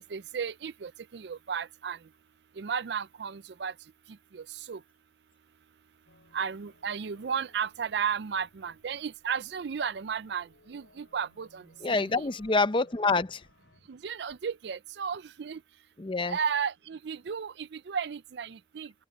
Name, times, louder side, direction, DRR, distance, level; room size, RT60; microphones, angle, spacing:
voice 1, 0.0-2.0 2.6-3.7 4.3-4.8 6.3-11.6 11.9-12.1 13.9-15.6 16.3-18.9, right 7 dB, 65° right, 0.4 m, -34 dB
sound 1, 6.1-13.8, left 2 dB, 90° left, 7.3 m, -63 dB
voice 2, 11.8-13.4 16.0-16.4, left 3 dB, 30° left, 0.6 m, -27 dB
head